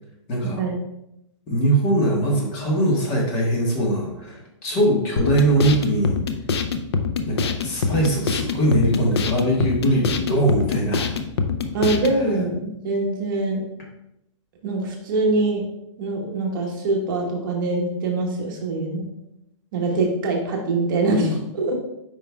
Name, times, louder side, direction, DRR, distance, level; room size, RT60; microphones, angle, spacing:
voice 1, 0.3-0.6 1.5-6.2 7.3-11.1, right 1 dB, 25° left, -2 dB, 1.4 m, -21 dB
sound 1, 5.2-12.2, left 5 dB, 55° left, 0.6 m, -25 dB
voice 2, 11.7-13.7 14.6-15.6 16.0-19.1 19.7-21.7, right 2 dB, 40° right, 0 dB, 1.3 m, -23 dB
7.9 x 5.3 x 2.3 m, 0.84 s
hypercardioid pair, 160°, 16 cm